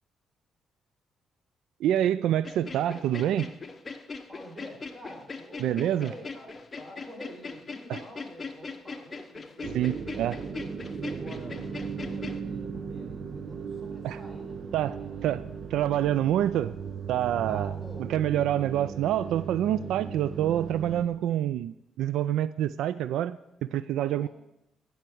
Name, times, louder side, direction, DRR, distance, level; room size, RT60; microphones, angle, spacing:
voice 1, 1.8-3.5 5.6-6.1 7.9-8.0 9.7-10.4 14.0-14.2 14.7-15.0 15.2-15.4 15.7-16.8 17.1-17.7 18.1-24.3, right 11 dB, 85° right, 16 dB, 0.3 m, -27 dB
sound 1, 2.4-12.4, left 4 dB, 30° left, 0.9 m, -40 dB
voice 2, 4.3-10.0 10.8-15.3 17.5-18.1 24.1-24.3, equal, 15° right, 0 dB, 4.4 m, -48 dB
sound 2, 9.6-21.1, right 6 dB, 45° right, 1.1 m, -37 dB
12.5 x 5.8 x 7.7 m, 0.89 s
cardioid pair, 90°, 0 cm